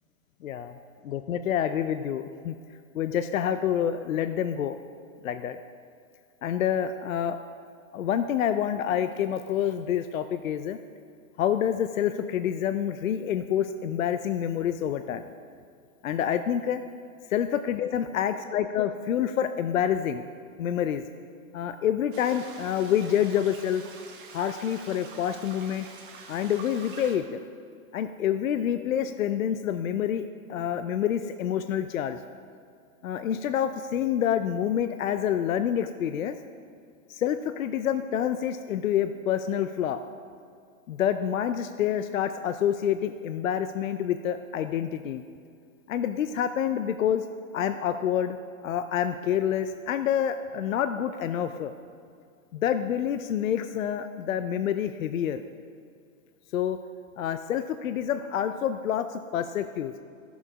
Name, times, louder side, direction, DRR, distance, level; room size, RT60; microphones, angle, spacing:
voice 1, 0.4-0.8 1.0-2.6 2.9-4.8 5.2-5.6 6.4-7.4 7.9-10.8 11.4-15.2 16.0-16.8 17.3-20.3 20.6-21.0 21.5-23.8 24.3-25.9 26.3-27.4 27.9-32.2 33.0-36.4 37.1-40.0 40.9-45.2 45.9-47.2 47.5-48.4 48.6-51.7 52.5-55.4 56.5-56.8 57.2-59.9, left 9 dB, 70° left, 9 dB, 0.6 m, -27 dB
sound 1, 22.1-27.2, right 4 dB, 40° right, 1.2 m, -46 dB
14.0 x 7.1 x 4.9 m, 2.3 s
hypercardioid pair, 175°, 42 cm